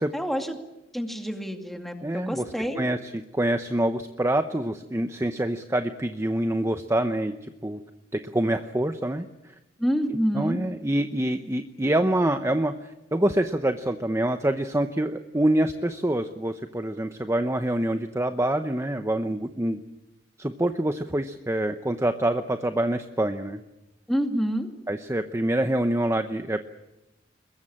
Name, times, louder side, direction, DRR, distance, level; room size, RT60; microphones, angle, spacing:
voice 1, 0.1-0.6 0.9-2.9 9.8-10.6 24.1-24.7, equal, ahead, 4 dB, 2.4 m, -27 dB
voice 2, 2.0-2.4 2.8-7.8 8.1-9.5 10.3-19.8 20.4-23.6 24.9-26.6, right 1 dB, 15° right, 8 dB, 0.8 m, -26 dB
22.0 x 21.5 x 8.7 m, 0.96 s
head